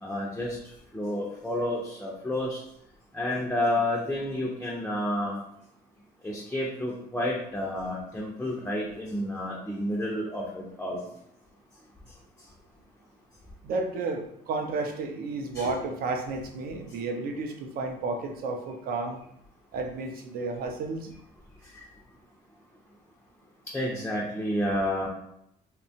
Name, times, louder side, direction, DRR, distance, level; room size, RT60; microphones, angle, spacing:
voice 1, 0.0-0.6 0.9-2.6 3.1-5.4 6.2-11.0 15.5-15.7 21.7-21.8 23.7-25.1, left 1 dB, 5° left, -3 dB, 0.4 m, -30 dB
voice 2, 13.6-19.2 19.7-21.1, right 3 dB, 60° right, 4 dB, 0.5 m, -32 dB
2.8 x 2.2 x 2.7 m, 0.75 s
cardioid pair, 110°, 17 cm